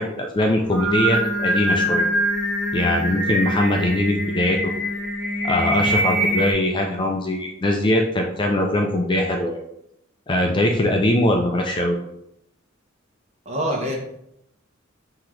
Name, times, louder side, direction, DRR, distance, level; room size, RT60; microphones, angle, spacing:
voice 1, 0.0-2.1 2.7-4.7 5.4-9.6 10.3-12.0, left 1 dB, 25° left, 1 dB, 0.4 m, -21 dB
Singing, 0.6-6.5, right 1 dB, 5° right, 1.0 m, -23 dB
voice 2, 13.4-14.0, equal, 30° right, -1 dB, 1.1 m, -26 dB
5.7 x 2.9 x 3.2 m, 0.78 s
head